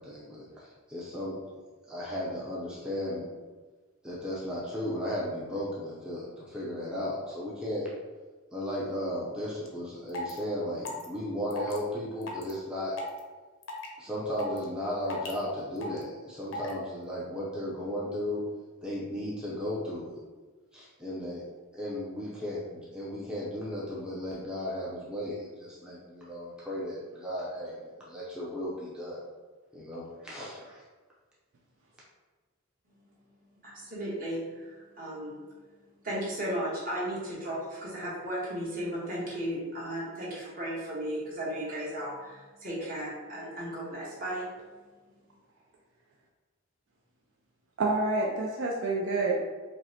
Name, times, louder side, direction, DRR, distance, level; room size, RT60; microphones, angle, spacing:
voice 1, 0.0-1.4 1.9-3.3 4.0-7.9 8.5-13.0 14.0-18.5 18.8-20.2 20.7-29.2 29.7-30.8, left 1 dB, 5° right, -7 dB, 0.5 m, -35 dB
sound 1, 9.6-9.7 10.1-10.4 10.8-11.1 11.5-11.8 12.2-12.5 13.0-13.2 13.6-13.9 14.4-14.6 15.1-15.3 15.8-16.0 16.5-16.7, left 1 dB, 70° left, 0.6 m, -37 dB
voice 2, 33.6-35.4 36.0-44.5, right 1 dB, 40° right, -7 dB, 1.2 m, -35 dB
voice 3, 47.8-49.4, right 2 dB, 60° right, -1 dB, 0.4 m, -28 dB
5.0 x 2.1 x 2.8 m, 1.4 s
head